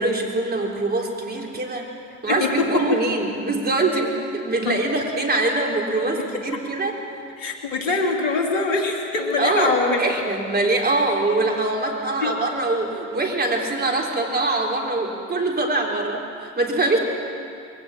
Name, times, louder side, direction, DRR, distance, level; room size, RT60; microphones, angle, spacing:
voice 1, 0.0-1.9 2.2-7.0 9.4-17.0, right 2 dB, 25° right, 1 dB, 3.9 m, -23 dB
voice 2, 2.3-3.0 4.6-4.8 6.2-6.4 7.4-10.0 12.2-12.4, left 3 dB, 80° left, 2 dB, 2.9 m, -23 dB
22.0 x 17.0 x 7.3 m, 2.4 s
hypercardioid pair, 75°, 38 cm